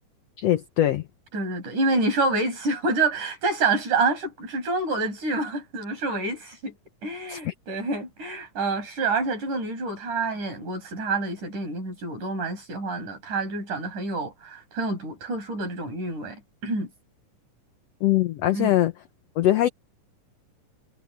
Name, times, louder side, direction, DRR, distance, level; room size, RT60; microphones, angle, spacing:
voice 1, 0.4-1.0 7.3-7.5 18.0-18.9 19.4-19.7, left 13 dB, 65° left, 1.9 m, -22 dB
voice 2, 1.3-6.7 7.0-16.9 18.5-18.7, right 3 dB, 75° right, 9.3 m, -27 dB
omnidirectional pair, 3.6 m